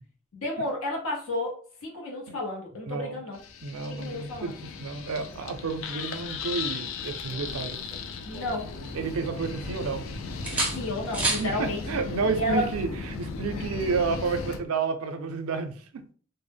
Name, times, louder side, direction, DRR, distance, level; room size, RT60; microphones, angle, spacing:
voice 1, 0.3-3.4 3.9-4.5 8.2-8.7 10.7-11.8 12.3-12.7 13.5-13.6, left 1 dB, 85° left, 0.7 m, -32 dB
voice 2, 2.9-3.2 3.6-4.5 4.8-7.8 8.9-10.0 11.4-16.0, right 4 dB, 85° right, 0.4 m, -30 dB
sound 1, 3.3-14.6, left 5 dB, 70° left, 0.3 m, -37 dB
sound 2, 7.3-8.9 9.2-10.0 10.4-11.5 13.4-13.6, right 2 dB, 5° right, 0.4 m, -33 dB
sound 3, 8.8-14.7, right 1 dB, 35° left, 0.6 m, -42 dB
2.1 x 2.0 x 3.3 m
head